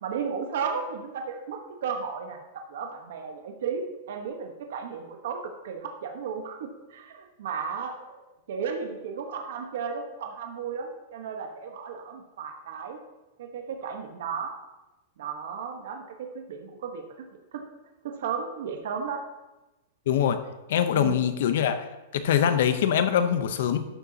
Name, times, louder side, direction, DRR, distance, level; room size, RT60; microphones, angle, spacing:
voice 1, 0.0-8.2 8.5-13.0 13.4-14.5 15.2-17.3 17.5-17.6 18.0-19.2 20.9-21.2, right 6 dB, 60° right, 4 dB, 1.0 m, -34 dB
voice 2, 20.1-20.4 20.7-21.8 22.1-23.9, left 9 dB, 55° left, 10 dB, 0.6 m, -23 dB
12.0 x 6.8 x 2.8 m, 1.1 s
supercardioid pair, 175°, 0 cm